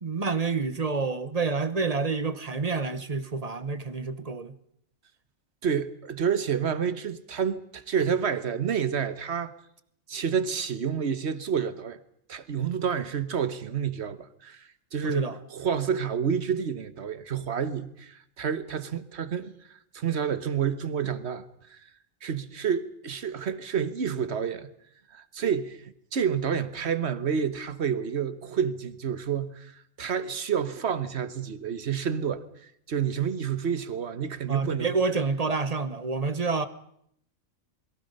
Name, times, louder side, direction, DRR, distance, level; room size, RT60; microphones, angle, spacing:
voice 1, 0.0-4.5 15.0-15.4 34.5-36.7, right 4 dB, 30° right, 0.9 m, -28 dB
voice 2, 5.6-9.5 10.1-12.0 12.3-14.6 14.9-19.5 19.9-21.4 22.2-24.7 25.1-25.8 26.1-29.7 30.0-32.4 32.9-34.9, right 7 dB, 50° right, 1.4 m, -29 dB
28.0 x 22.0 x 5.5 m
omnidirectional pair, 1.5 m